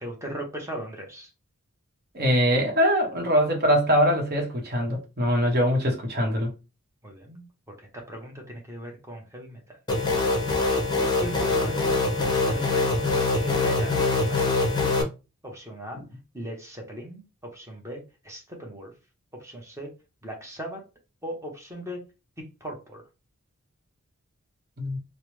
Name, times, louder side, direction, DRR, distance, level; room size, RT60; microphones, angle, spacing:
voice 1, 0.0-1.3 7.0-10.2 11.2-14.8 15.4-16.0 16.3-17.3 17.5-18.9 19.4-19.9 20.2-20.8 21.2-22.0 22.4-23.0, equal, 15° right, 0.8 m, -39 dB
voice 2, 2.1-6.5 15.9-16.0 24.8-25.0, equal, 45° right, 1.0 m, -23 dB
sound 1, 9.9-15.0, left 3 dB, 20° left, 0.6 m, -24 dB
3.1 x 2.1 x 3.1 m
head